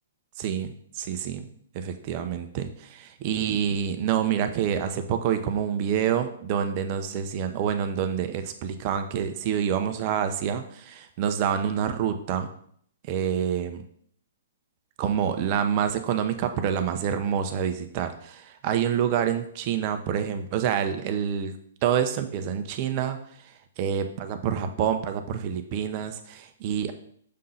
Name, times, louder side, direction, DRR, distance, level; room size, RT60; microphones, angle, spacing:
voice 1, 0.4-1.5 1.7-12.5 13.1-13.8 15.0-21.5 21.8-26.9, right 8 dB, 40° right, 8 dB, 0.8 m, -27 dB
6.5 x 3.9 x 5.6 m, 0.62 s
hypercardioid pair, 135°, 0 cm